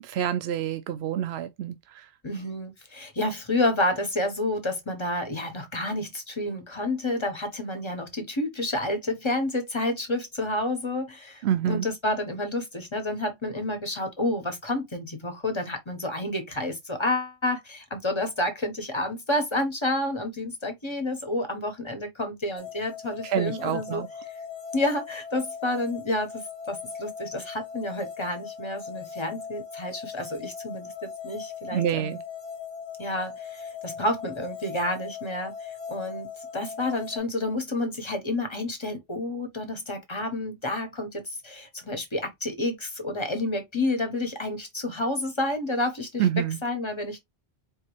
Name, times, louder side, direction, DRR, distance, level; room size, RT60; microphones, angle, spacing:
voice 1, 0.1-2.1 11.4-11.8 23.2-24.1 31.7-32.2 46.2-46.6, right 10 dB, 80° right, 0.8 m, -27 dB
voice 2, 2.2-24.0 24.7-32.2 33.0-46.3 46.6-47.2, left 1 dB, 30° left, 1.2 m, -30 dB
sound 1, 22.6-37.2, left 7 dB, 65° left, 1.2 m, -39 dB
4.5 x 3.1 x 3.1 m
omnidirectional pair, 1.1 m